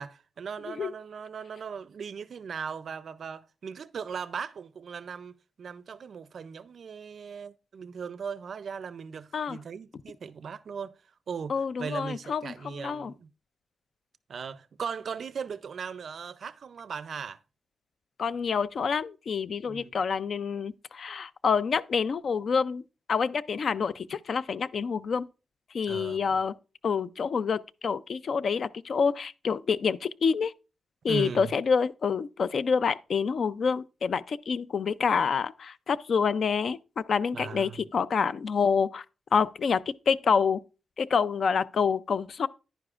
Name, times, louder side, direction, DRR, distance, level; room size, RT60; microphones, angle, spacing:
voice 1, 0.0-11.0 11.3-13.3 14.3-17.4 19.7-19.9 25.8-26.3 31.1-31.5 37.3-37.8, right 6 dB, 60° right, 0.4 m, -38 dB
voice 2, 11.5-13.1 18.2-22.8 23.1-25.3 25.7-26.5 26.8-30.5 31.0-39.0 39.3-40.6 41.0-42.5, left 6 dB, 55° left, 0.3 m, -27 dB
10.0 x 9.8 x 2.4 m
wide cardioid pair, 160°, 0 cm